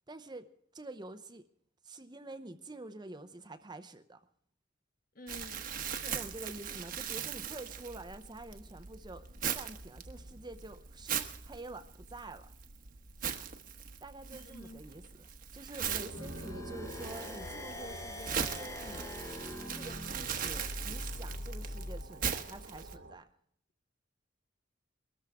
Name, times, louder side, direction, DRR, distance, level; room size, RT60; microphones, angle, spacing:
voice 1, 0.1-1.4 1.8-4.2 6.1-9.3 9.5-12.5 14.0-15.3 15.5-19.1 19.7-23.3, right 2 dB, 20° right, 0.7 m, -47 dB
voice 2, 5.1-6.2 14.3-14.8, left 1 dB, 45° left, 1.3 m, -50 dB
Crumpling crinkling, 5.3-22.9, right 7 dB, 45° right, 1.1 m, -40 dB
sound 1, 15.8-23.2, right 1 dB, 65° right, 1.5 m, -49 dB
sound 2, 16.2-22.1, left 1 dB, 15° left, 0.8 m, -43 dB
22.0 x 13.5 x 3.5 m
head